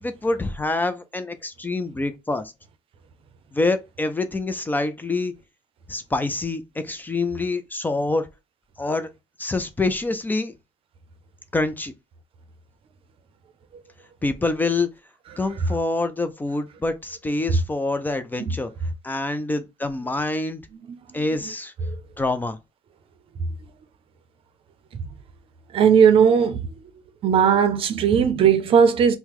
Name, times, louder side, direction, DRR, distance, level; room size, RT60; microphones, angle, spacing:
voice 1, 0.0-2.5 3.5-5.3 5.9-8.3 8.8-9.1 9.4-10.5 11.5-11.9 14.2-14.9 15.4-18.7 19.0-20.6 21.1-21.7 22.2-22.6, left 2 dB, 15° left, 0.4 m, -26 dB
voice 2, 20.9-21.5 21.8-22.0 24.9-25.0 25.7-26.7 27.2-29.2, right 7 dB, 50° right, 0.6 m, -18 dB
2.8 x 2.1 x 3.6 m
supercardioid pair, 80°, 12 cm